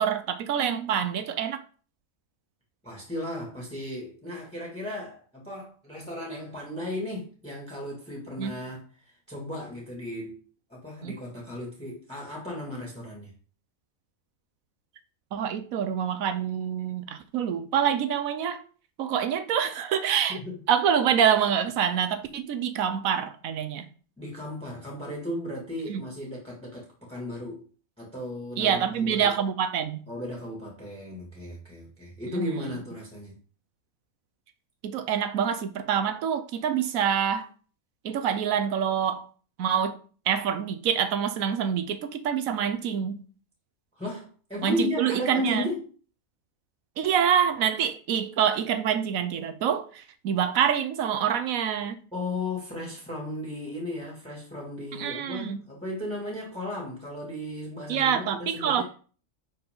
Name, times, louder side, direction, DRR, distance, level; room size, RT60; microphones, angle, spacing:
voice 1, 0.0-1.6 8.4-8.5 11.0-11.1 15.3-18.6 19.0-20.4 20.7-23.9 25.9-26.0 28.6-30.0 32.3-32.5 34.8-37.5 38.0-39.3 39.6-40.0 40.3-43.2 44.6-45.7 47.0-52.0 54.9-55.6 57.9-58.8, right 8 dB, 90° right, 1.1 m, -26 dB
voice 2, 2.8-10.4 10.7-13.3 20.3-20.6 24.2-27.6 28.0-29.3 30.1-33.4 44.0-45.9 52.1-58.8, left 1 dB, 5° left, 2.2 m, -35 dB
10.5 x 4.4 x 3.8 m
omnidirectional pair, 1.4 m